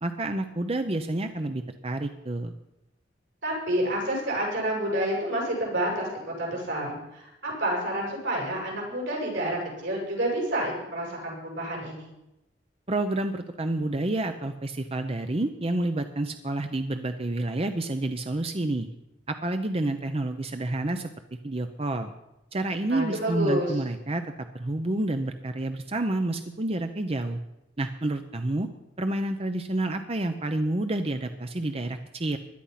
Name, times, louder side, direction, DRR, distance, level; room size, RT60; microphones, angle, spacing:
voice 1, 0.0-2.5 12.9-18.9 19.3-21.1 21.4-22.1 22.5-27.4 27.8-28.7 29.0-32.4, right 2 dB, 35° right, 7 dB, 0.8 m, -29 dB
voice 2, 3.4-12.1 22.9-23.8, right 1 dB, 85° right, -2 dB, 7.6 m, -29 dB
17.0 x 12.0 x 5.8 m, 0.92 s
head